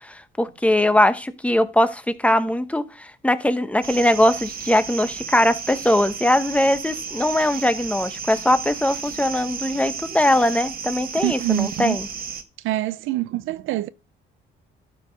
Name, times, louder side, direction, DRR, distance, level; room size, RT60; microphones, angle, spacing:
voice 1, 0.0-12.1, left 1 dB, 5° left, 1.0 m, -21 dB
sound 1, 3.8-12.4, right 6 dB, 50° right, 1.2 m, -33 dB
voice 2, 11.2-12.0 12.6-13.9, right 15 dB, 90° right, 0.5 m, -25 dB
12.0 x 4.9 x 5.1 m
cardioid pair, 90°, 20 cm